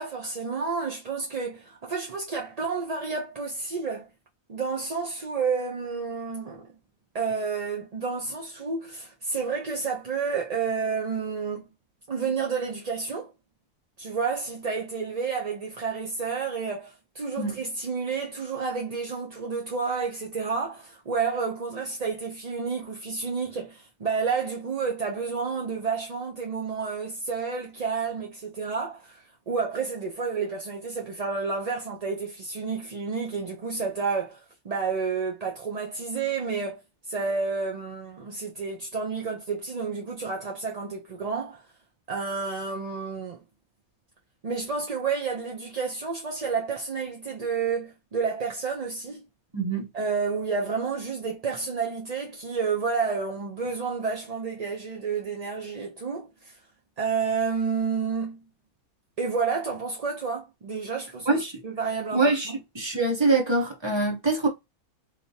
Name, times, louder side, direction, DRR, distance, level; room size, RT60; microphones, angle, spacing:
voice 1, 0.0-4.1 4.5-6.7 7.1-11.7 12.1-13.3 14.0-36.8 37.1-41.6 42.1-43.4 44.4-49.3 49.9-56.5 57.0-58.5 59.2-62.5, right 5 dB, 45° right, 0.5 m, -30 dB
voice 2, 49.5-49.9 61.3-61.6 62.1-64.5, right 3 dB, 20° right, 1.0 m, -24 dB
3.3 x 2.8 x 2.8 m
omnidirectional pair, 1.5 m